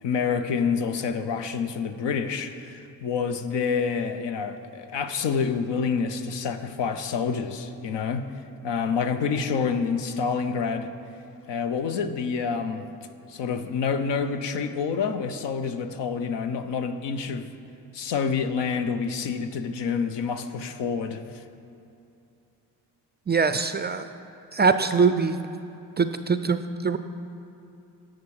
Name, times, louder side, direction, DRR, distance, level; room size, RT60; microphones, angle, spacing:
voice 1, 0.0-8.2 8.6-10.9 11.5-12.9 13.3-17.5 17.9-21.4, left 6 dB, 70° left, 9 dB, 0.8 m, -28 dB
voice 2, 23.3-24.1 24.5-25.4 26.0-27.0, right 5 dB, 25° right, 10 dB, 0.4 m, -23 dB
15.5 x 6.2 x 4.9 m, 2.8 s
supercardioid pair, 65°, 44 cm